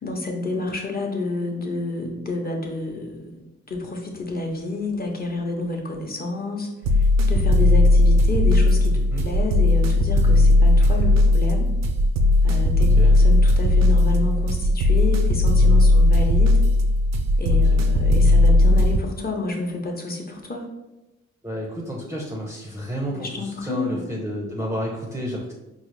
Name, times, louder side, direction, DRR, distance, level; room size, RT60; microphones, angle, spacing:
voice 1, 0.0-6.7 7.0-11.7 12.4-16.6 17.4-20.7 23.1-24.1, left 2 dB, 30° left, 1 dB, 0.8 m, -29 dB
sound 1, 6.8-19.0, left 2 dB, 65° right, 0.5 m, -17 dB
voice 2, 8.9-9.3 13.0-13.1 17.5-17.8 21.4-25.5, equal, 10° right, -2 dB, 0.6 m, -31 dB
4.6 x 2.0 x 3.1 m, 0.97 s
cardioid pair, 65°, 29 cm